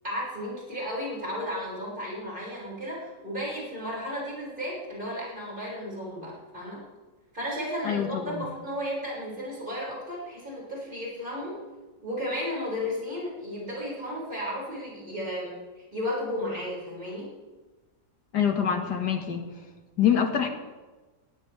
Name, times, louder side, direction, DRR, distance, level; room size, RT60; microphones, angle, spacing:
voice 1, 0.0-6.8 7.3-11.6 12.0-17.3, equal, 30° right, -5 dB, 6.6 m, -34 dB
voice 2, 7.8-8.5 18.3-19.5 20.0-20.5, left 8 dB, 80° left, 4 dB, 2.4 m, -25 dB
19.5 x 17.5 x 3.5 m, 1.2 s
omnidirectional pair, 1.8 m